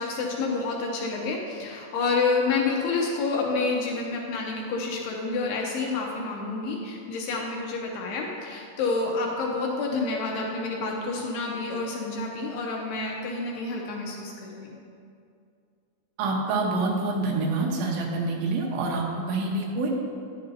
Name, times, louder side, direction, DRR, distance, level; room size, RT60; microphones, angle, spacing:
voice 1, 0.0-14.8, left 3 dB, 75° left, -1 dB, 2.5 m, -29 dB
voice 2, 16.2-19.9, right 3 dB, 85° right, -1 dB, 3.4 m, -27 dB
11.0 x 9.7 x 2.7 m, 2.4 s
omnidirectional pair, 5.1 m